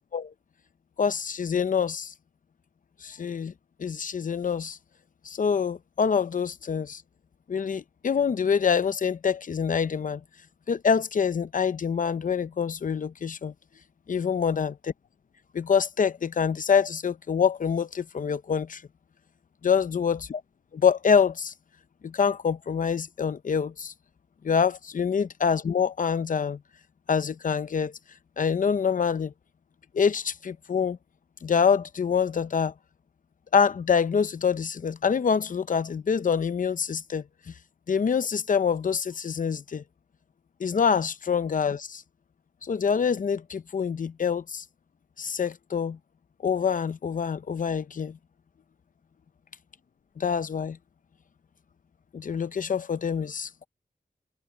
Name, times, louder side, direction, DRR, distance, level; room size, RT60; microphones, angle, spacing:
voice 1, 1.0-2.1 3.0-3.5 3.8-4.8 5.2-7.0 7.5-10.2 10.7-13.5 14.1-14.9 15.5-18.8 19.6-20.4 20.7-21.5 22.0-23.9 24.4-26.6 27.1-27.9 28.4-29.3 29.9-31.0 31.4-32.7 33.5-37.5 37.9-39.8 40.6-42.0 42.6-44.6 45.2-46.0 46.4-48.2 50.2-50.8 52.1-53.7, left 6 dB, 60° left, 0.7 m, -26 dB
wide cardioid pair, 125°, 16 cm